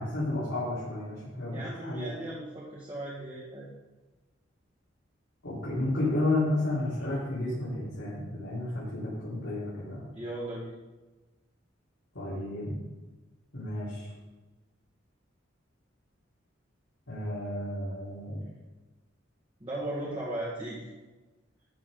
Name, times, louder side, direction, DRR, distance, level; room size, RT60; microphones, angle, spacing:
voice 1, 0.0-2.2 5.4-10.1 12.1-12.8 13.5-14.1 17.1-18.4, left 1 dB, 85° left, -10 dB, 4.0 m, -32 dB
voice 2, 1.5-3.7 10.1-10.8 19.6-20.9, right 1 dB, 25° right, -6 dB, 2.0 m, -37 dB
13.0 x 7.4 x 3.9 m, 1.2 s
head